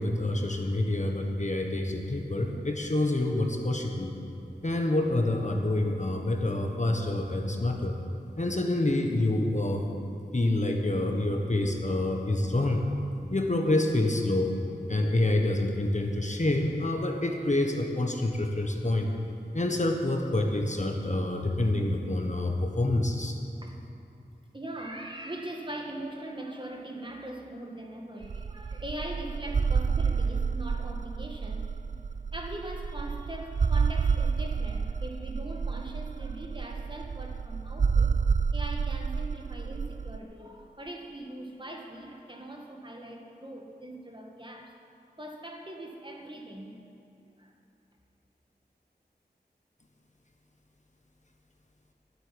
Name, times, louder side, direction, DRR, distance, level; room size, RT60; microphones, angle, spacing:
voice 1, 0.0-4.1 4.6-7.9 8.3-9.9 10.3-12.8 13.3-14.5 14.9-19.1 19.5-23.4, left 1 dB, 45° left, 3 dB, 1.4 m, -27 dB
voice 2, 23.6-23.9 24.5-31.6 32.3-38.2 38.5-44.8 45.2-46.8 47.4-47.5, right 1 dB, 25° right, 1 dB, 1.9 m, -41 dB
sound 1, 28.2-40.2, right 5 dB, 45° right, 0.4 m, -29 dB
11.5 x 8.1 x 9.9 m, 2.6 s
wide cardioid pair, 45°, 18 cm